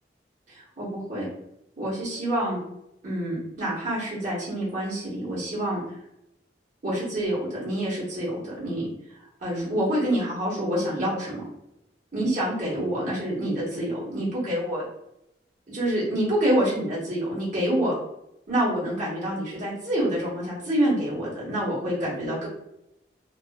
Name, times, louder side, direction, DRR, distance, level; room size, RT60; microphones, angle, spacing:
voice 1, 0.5-1.3 1.8-2.6 3.0-5.8 6.8-8.9 9.4-11.4 12.1-14.8 15.7-17.9 18.5-22.5, right 1 dB, 45° right, -8 dB, 1.1 m, -27 dB
2.5 x 2.4 x 2.3 m, 0.83 s
head